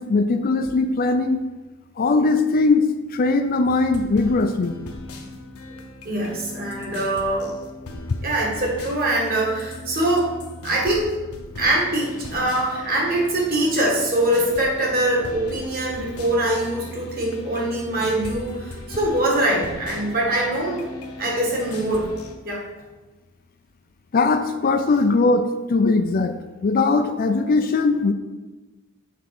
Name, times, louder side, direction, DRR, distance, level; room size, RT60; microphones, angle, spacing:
voice 1, 0.0-1.4 2.0-4.8 24.1-26.3 26.6-28.1, left 3 dB, 40° left, 9 dB, 0.4 m, -20 dB
sound 1, 3.6-22.4, left 2 dB, 75° left, 0.9 m, -38 dB
voice 2, 6.1-7.6 8.2-10.3 10.6-11.2 11.6-20.9 21.2-22.1 22.4-22.6, right 1 dB, 40° right, -3 dB, 1.8 m, -23 dB
7.3 x 3.6 x 5.9 m, 1.2 s
head